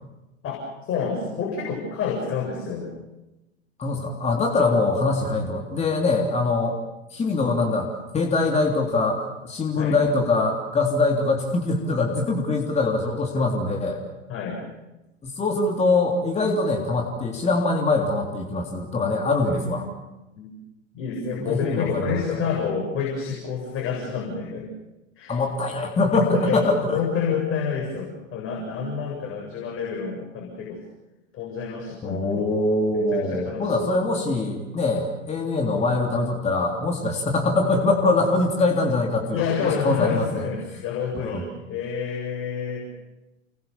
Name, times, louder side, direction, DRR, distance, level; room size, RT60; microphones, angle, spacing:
voice 1, 0.4-2.9 9.8-10.0 14.3-14.6 19.4-19.9 20.4-20.6 20.9-24.7 25.2-25.4 26.3-26.6 26.9-30.8 31.3-32.5 32.9-33.9 39.3-41.4 41.7-42.8, left 6 dB, 35° left, -2 dB, 7.8 m, -28 dB
voice 2, 3.8-6.8 7.1-7.9 8.1-14.0 15.2-19.9 21.4-22.2 25.3-27.0 32.0-40.5 41.2-41.4, left 3 dB, 15° left, 1 dB, 3.4 m, -23 dB
30.0 x 22.0 x 7.2 m, 1.0 s
figure-of-eight pair, 95°, 38 cm